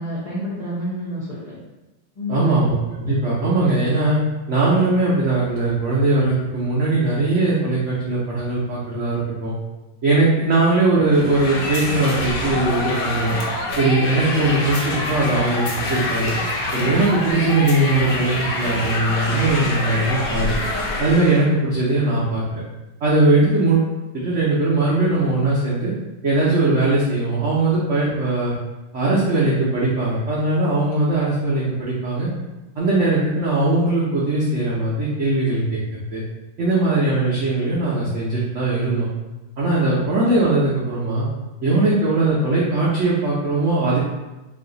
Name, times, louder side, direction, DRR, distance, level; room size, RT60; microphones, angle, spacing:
voice 1, 0.0-1.6 2.2-2.7, equal, 60° left, -10 dB, 0.4 m, -28 dB
voice 2, 2.3-4.2 4.5-9.5 10.0-13.3 13.8-16.3 16.7-20.5 21.0-22.6 23.0-23.9 24.1-25.9 26.2-28.5 28.9-32.3 32.8-35.8 36.1-36.2 36.6-39.1 39.6-41.3 41.6-44.0, right 2 dB, 85° right, -7 dB, 0.6 m, -20 dB
sound 1, 11.1-21.5, left 2 dB, 85° left, 0.7 m, -26 dB
3.1 x 2.6 x 3.8 m, 1.1 s
omnidirectional pair, 2.1 m